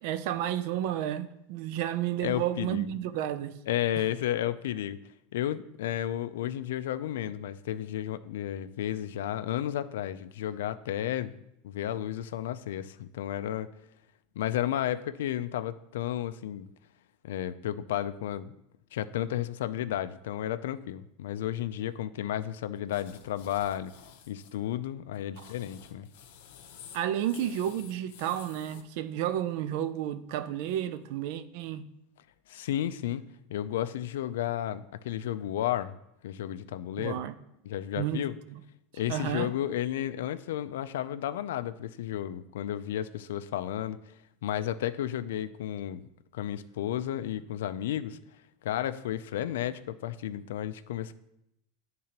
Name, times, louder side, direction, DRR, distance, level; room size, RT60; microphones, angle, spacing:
voice 1, 0.0-3.6 4.0-4.1 25.4-25.5 26.9-31.9 37.0-37.3 38.0-38.6 39.1-39.5, right 11 dB, 55° right, 0.4 m, -32 dB
voice 2, 2.2-2.9 3.7-5.0 5.3-11.3 11.6-13.7 14.4-16.7 17.2-18.5 18.9-23.9 24.3-26.1 32.5-33.2 33.5-35.9 36.2-37.2 37.7-38.3 39.0-44.0 44.4-46.0 46.3-48.2 48.6-51.1, left 12 dB, 90° left, 0.3 m, -32 dB
sound 1, 22.9-24.5 25.1-28.8, left 8 dB, 75° left, 0.7 m, -51 dB
10.0 x 3.7 x 2.9 m
supercardioid pair, 160°, 0 cm